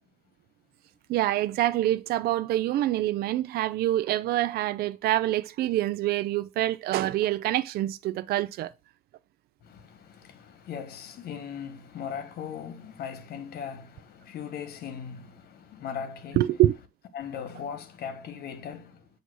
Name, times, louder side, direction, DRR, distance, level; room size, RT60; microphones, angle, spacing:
voice 1, 1.1-8.7 16.4-16.8, right 14 dB, 65° right, 0.5 m, -26 dB
voice 2, 9.6-16.5 17.1-19.1, left 7 dB, 65° left, 1.4 m, -39 dB
8.1 x 2.9 x 6.2 m
cardioid pair, 110°, 17 cm